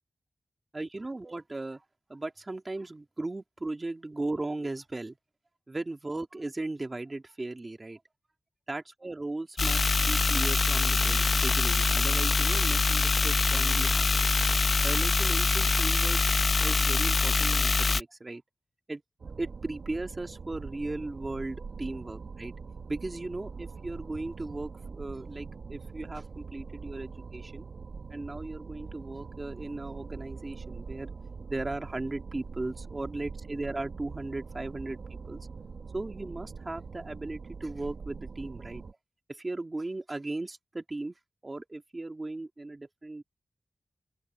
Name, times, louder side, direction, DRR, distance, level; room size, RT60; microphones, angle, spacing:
voice 1, 0.7-1.8 2.1-5.2 5.7-8.0 8.7-14.3 14.8-16.2 16.6-18.4 18.9-19.0 19.4-22.5 22.9-27.7 28.1-31.1 31.5-35.4 35.9-38.8 39.3-41.1 41.4-43.2, right 2 dB, 30° right, 2.6 m, -37 dB
sound 1, 9.6-18.0, left 4 dB, 55° left, 0.7 m, -24 dB
sound 2, 19.2-38.9, right 5 dB, 70° right, 1.2 m, -43 dB
open air
wide cardioid pair, 90°, 0 cm